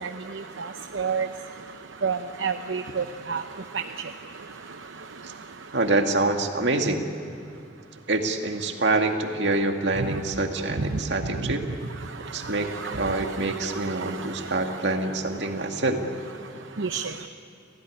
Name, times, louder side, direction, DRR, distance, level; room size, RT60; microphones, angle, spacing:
voice 1, 0.0-1.3 2.0-3.4 3.7-3.8 10.9-11.0 11.4-11.5 12.4-14.4 16.8-17.1, right 5 dB, 85° right, 6 dB, 0.8 m, -30 dB
voice 2, 5.7-7.0 8.1-11.6 12.3-12.7 13.0-16.0, right 2 dB, 65° right, 4 dB, 2.2 m, -26 dB
28.0 x 17.5 x 9.8 m, 2.7 s
head